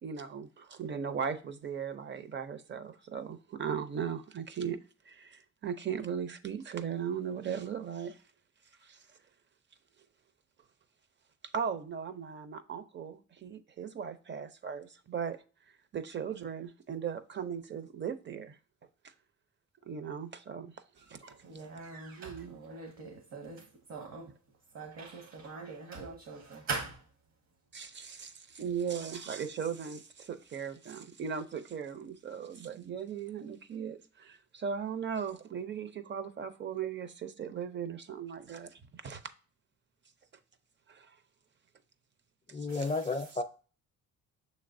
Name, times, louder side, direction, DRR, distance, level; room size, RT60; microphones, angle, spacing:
voice 1, 0.0-4.8 5.0-8.2 8.8-9.2 11.5-15.4 15.9-18.6 19.0-19.1 19.8-20.7 21.1-21.2 22.2-22.6 27.7-39.3 40.9-41.2 42.5-42.9, right 7 dB, 40° right, 0.6 m, -38 dB
voice 2, 21.2-24.3 24.7-27.0 42.7-43.1, right 4 dB, 55° right, 1.0 m, -42 dB
voice 3, 42.5-43.4, left 3 dB, 25° left, 0.5 m, -32 dB
6.4 x 3.2 x 2.6 m
cardioid pair, 90°, 30 cm